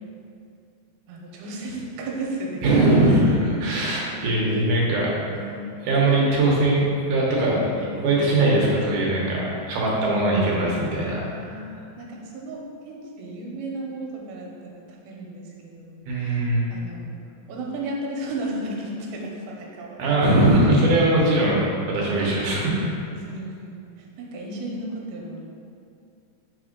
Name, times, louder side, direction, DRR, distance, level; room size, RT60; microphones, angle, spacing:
voice 1, 1.1-2.6 3.0-4.3 5.3-6.1 7.8-8.1 10.9-17.2 17.5-20.0 23.1-25.4, right 1 dB, 85° right, -1 dB, 2.6 m, -35 dB
voice 2, 2.6-5.1 5.9-7.7 8.0-11.6 16.1-16.7 20.0-21.6 21.9-22.8, right 2 dB, 70° right, -4 dB, 2.1 m, -20 dB
4.7 x 4.3 x 5.0 m, 2.4 s
omnidirectional pair, 4.1 m